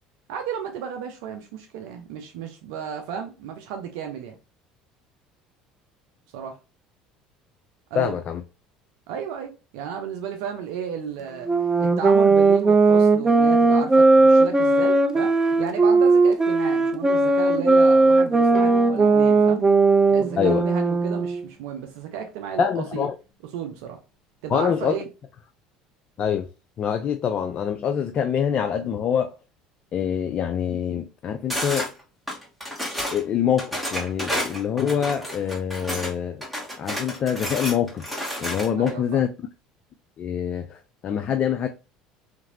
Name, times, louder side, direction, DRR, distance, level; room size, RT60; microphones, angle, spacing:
voice 1, 0.3-4.4 6.3-6.6 7.9-8.1 9.1-11.5 11.8-19.7 20.1-23.1 23.5-24.0 24.4-25.1 38.8-39.2, right 7 dB, 70° right, 0.5 m, -33 dB
voice 2, 8.0-8.4 20.4-20.6 22.6-23.1 24.5-25.0 26.2-26.5 26.8-29.3 29.9-31.9 33.1-36.4 36.8-38.1 38.4-39.3 40.2-41.7, left 8 dB, 45° left, 0.3 m, -25 dB
sound 1, 11.4-21.5, right 3 dB, 20° right, 0.5 m, -18 dB
Bowed string instrument, 18.5-21.9, right 2 dB, 20° left, 1.1 m, -41 dB
sound 2, 31.5-31.9 32.3-33.2 33.6-36.1 36.4-38.9, equal, ahead, 1.5 m, -30 dB
2.9 x 2.6 x 2.6 m
hypercardioid pair, 75°, 3 cm